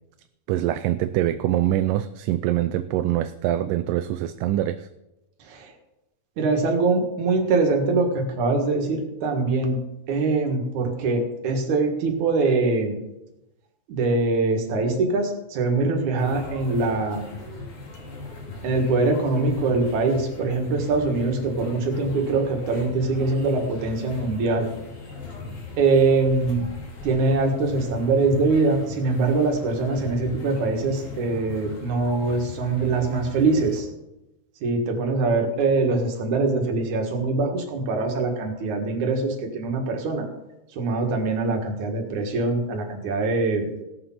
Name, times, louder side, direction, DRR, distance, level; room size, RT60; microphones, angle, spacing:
voice 1, 0.5-4.9, right 13 dB, 80° right, 10 dB, 2.1 m, -24 dB
voice 2, 6.4-9.8 10.1-13.0 13.9-17.3 18.6-24.7 25.8-26.7 27.0-33.9 34.6-40.3 40.8-43.8, right 3 dB, 60° right, 3 dB, 3.0 m, -23 dB
sound 1, 16.2-33.8, left 3 dB, 80° left, 4.5 m, -39 dB
17.0 x 6.9 x 5.7 m, 0.94 s
omnidirectional pair, 4.0 m